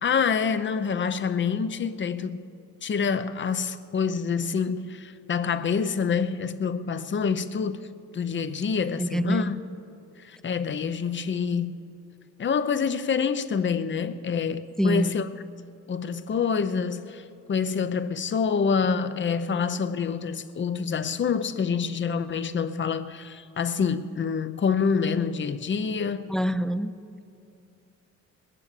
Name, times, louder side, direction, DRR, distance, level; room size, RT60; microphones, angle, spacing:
voice 1, 0.0-2.5 2.8-7.9 8.1-9.6 10.2-11.7 12.4-15.3 15.9-26.3, left 6 dB, 40° left, 0.7 m, -27 dB
voice 2, 9.0-9.6 14.8-15.2 26.3-26.9, equal, ahead, 0.5 m, -25 dB
20.5 x 9.8 x 6.8 m
cardioid pair, 90°, 30 cm